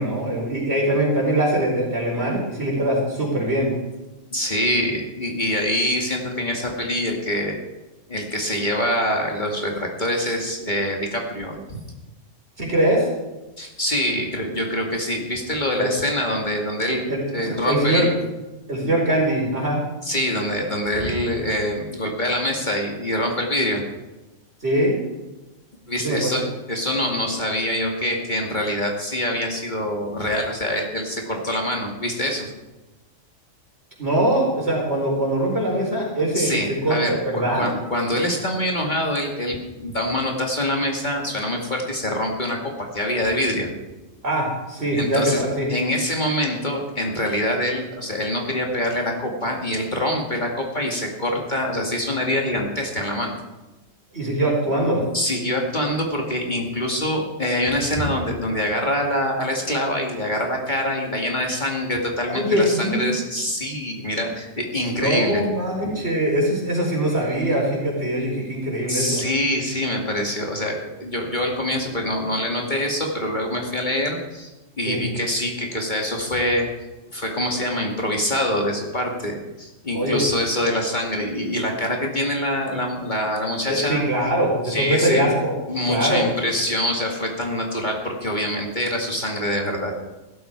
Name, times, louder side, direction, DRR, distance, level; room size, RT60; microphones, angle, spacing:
voice 1, 0.0-3.7 12.6-13.1 15.8-15.9 17.1-18.1 18.7-19.8 24.6-24.9 26.0-26.4 34.0-36.5 36.8-37.7 44.2-45.7 54.1-55.0 62.3-63.1 64.8-69.2 74.9-75.0 79.9-80.2 83.7-85.5 85.9-86.2, right 1 dB, 55° right, -2 dB, 4.9 m, -22 dB
voice 2, 4.3-7.5 8.1-11.8 13.6-18.1 20.0-23.8 25.9-32.5 36.3-43.7 44.9-45.4 45.7-53.4 55.1-65.5 68.9-74.5 74.8-76.7 77.1-84.0 84.6-85.3 85.7-89.9, left 1 dB, 35° left, 0 dB, 2.3 m, -25 dB
16.0 x 13.5 x 4.6 m, 1.1 s
omnidirectional pair, 1.3 m